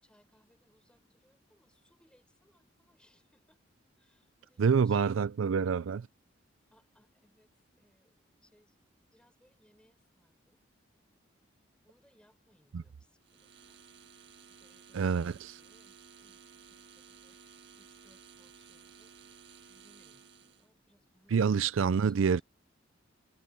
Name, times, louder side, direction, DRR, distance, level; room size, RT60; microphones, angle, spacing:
voice 1, 0.0-3.6 4.0-5.4 6.7-8.8 9.1-10.6 11.8-17.4 17.8-22.4, equal, 5° left, 6.1 m, -69 dB
voice 2, 4.6-6.1 12.7-12.8 14.9-15.3 21.3-22.4, right 6 dB, 85° right, 0.4 m, -27 dB
sound 1, 13.2-20.7, right 6 dB, 60° right, 2.0 m, -56 dB
head